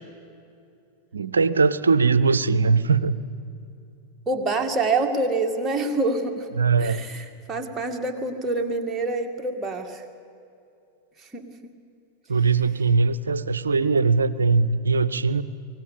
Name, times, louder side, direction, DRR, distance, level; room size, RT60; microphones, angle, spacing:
voice 1, 1.1-3.2 6.6-7.0 12.3-15.4, right 4 dB, 70° right, 17 dB, 0.7 m, -20 dB
voice 2, 4.3-6.5 6.8-10.0 11.2-11.7, right 3 dB, 15° right, 2 dB, 2.2 m, -26 dB
24.0 x 18.5 x 8.5 m, 2.6 s
figure-of-eight pair, 90°, 0 cm